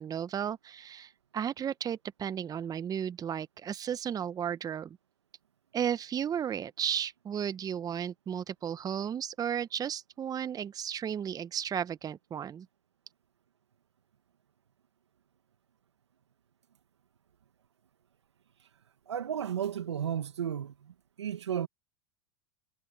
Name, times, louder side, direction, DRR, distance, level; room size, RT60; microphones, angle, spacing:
voice 1, 0.0-5.0 5.7-12.7, right 8 dB, 25° right, 0.8 m, -34 dB
voice 2, 19.1-21.7, right 9 dB, 90° right, 1.3 m, -34 dB
hypercardioid pair, 90°, 14 cm